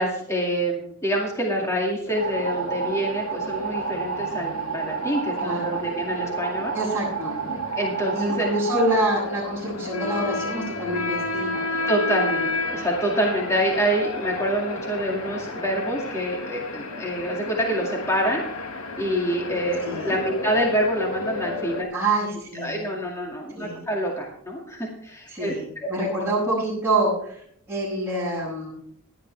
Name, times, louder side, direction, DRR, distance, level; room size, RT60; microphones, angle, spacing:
voice 1, 0.0-6.7 7.8-8.5 11.9-18.4 19.0-21.9 22.5-25.9, right 1 dB, 15° left, -1 dB, 2.2 m, -26 dB
sound 1, 2.1-21.8, left 3 dB, 75° left, 1.8 m, -32 dB
sound 2, 2.2-9.0, right 7 dB, 50° right, 1.0 m, -31 dB
voice 2, 5.4-5.8 6.7-7.6 8.1-11.6 19.8-20.2 21.9-22.9 23.5-23.8 25.3-28.7, right 1 dB, 5° right, -13 dB, 7.1 m, -26 dB
17.0 x 11.5 x 3.4 m, 0.66 s
head